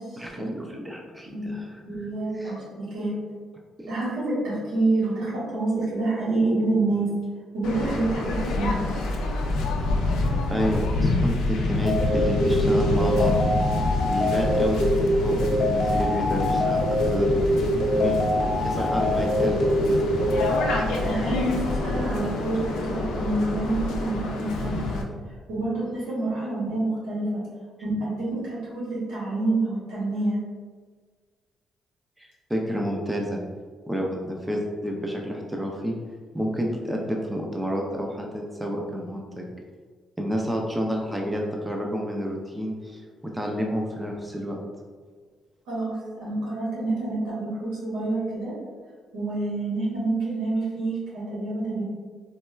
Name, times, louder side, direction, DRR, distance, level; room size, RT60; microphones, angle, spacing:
voice 1, 0.2-1.6 2.3-2.5 8.4-8.6 10.5-13.4 14.1-17.3 18.0-18.2 18.6-19.7 32.2-33.4 33.9-36.0 36.3-39.5 40.2-43.0 43.3-44.6, equal, 10° right, 0 dB, 0.4 m, -29 dB
voice 2, 1.2-3.2 3.9-7.1 7.5-8.9 21.0-25.0 25.5-27.4 27.8-30.4 45.7-48.5 49.1-51.8, right 2 dB, 85° right, -7 dB, 1.3 m, -27 dB
Waves surf, 7.6-25.0, left 2 dB, 90° left, 0.4 m, -27 dB
sound 1, 11.8-20.7, equal, 55° left, 0.8 m, -24 dB
4.1 x 2.1 x 2.2 m, 1.5 s
cardioid pair, 90°, 0 cm